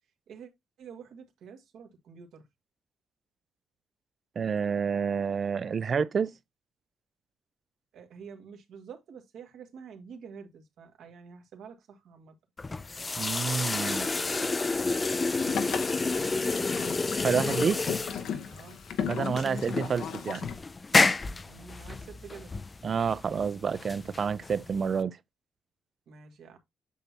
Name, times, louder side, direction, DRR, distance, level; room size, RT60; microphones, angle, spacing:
voice 1, 0.8-2.5 7.9-12.4 13.7-16.6 18.5-18.8 21.4-22.5 26.1-26.6, right 6 dB, 75° right, 1.8 m, -48 dB
voice 2, 4.4-6.3 13.2-14.1 17.2-17.8 19.0-20.5 22.8-25.2, right 6 dB, 45° right, 0.5 m, -29 dB
sound 1, 12.6-25.0, left 3 dB, 25° left, 0.5 m, -30 dB
Boat Water vehicle, 15.2-20.6, left 7 dB, 80° left, 1.0 m, -36 dB
8.2 x 5.9 x 2.9 m
cardioid pair, 90°, 0 cm